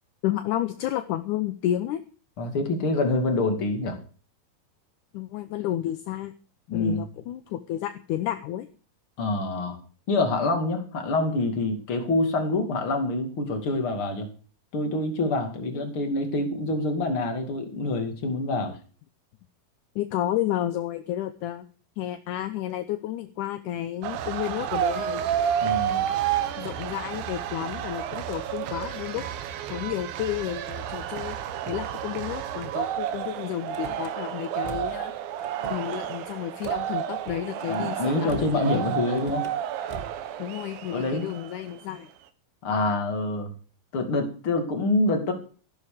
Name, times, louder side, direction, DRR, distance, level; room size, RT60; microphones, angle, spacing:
voice 1, 0.2-2.0 5.1-6.3 6.7-8.7 15.7-15.8 18.7-18.8 20.0-21.7 22.0-25.2 26.6-29.2 29.7-31.4 31.7-35.1 35.7-39.0 40.4-42.1, left 12 dB, 75° left, 10 dB, 2.1 m, -31 dB
voice 2, 2.4-4.0 6.7-7.0 9.2-9.8 10.1-14.3 14.7-18.7 25.6-26.1 37.7-39.4 40.9-41.3 42.6-43.5 43.9-45.3, left 2 dB, 40° left, 5 dB, 3.1 m, -26 dB
sound 1, 24.0-41.8, right 10 dB, 80° right, 3.0 m, -31 dB
Car / Slam, 33.7-34.1 34.6-35.1 35.4-36.0 36.6-36.8 37.2-37.7 38.3-38.7 39.1-39.6 39.9-40.3, right 2 dB, 40° right, 0.5 m, -41 dB
15.0 x 11.5 x 5.0 m, 0.39 s
omnidirectional pair, 4.1 m